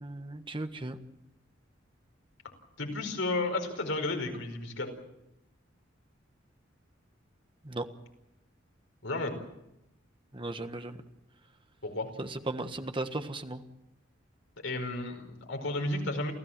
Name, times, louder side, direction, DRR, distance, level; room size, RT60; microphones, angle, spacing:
voice 1, 0.0-1.0 7.6-7.9 10.3-11.0 12.2-13.6, right 2 dB, 25° right, 8 dB, 1.5 m, -36 dB
voice 2, 2.8-4.9 9.0-9.3 11.8-12.1 14.6-16.3, left 2 dB, 75° left, 4 dB, 5.0 m, -32 dB
28.5 x 15.5 x 7.5 m, 0.86 s
head